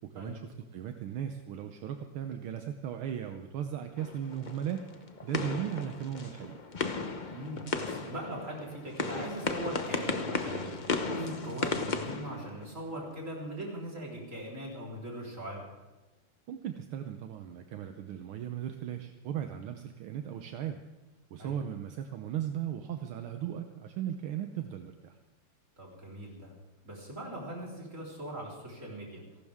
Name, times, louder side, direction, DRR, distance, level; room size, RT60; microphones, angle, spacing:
voice 1, 0.1-4.9 5.2-6.6 16.5-20.8 21.3-25.1, right 9 dB, 75° right, 6 dB, 1.7 m, -37 dB
sound 1, 4.0-13.1, left 4 dB, 50° left, 0.5 m, -35 dB
voice 2, 7.3-15.6 21.4-21.6 25.8-26.5 26.8-29.2, right 1 dB, 35° right, -3 dB, 4.4 m, -40 dB
29.5 x 12.0 x 3.6 m, 1.1 s
omnidirectional pair, 2.4 m